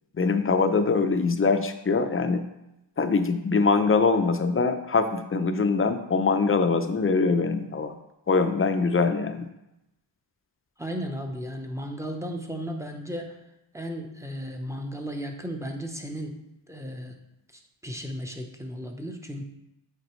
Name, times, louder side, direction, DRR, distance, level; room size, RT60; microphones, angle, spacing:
voice 1, 0.1-2.4 3.0-7.9 8.3-9.5, left 4 dB, 30° left, 8 dB, 0.6 m, -23 dB
voice 2, 10.8-13.4 13.7-16.4 16.7-17.2 17.8-19.4, equal, 5° right, 3 dB, 0.9 m, -35 dB
8.0 x 4.2 x 3.1 m, 0.89 s
cardioid pair, 70°, 45 cm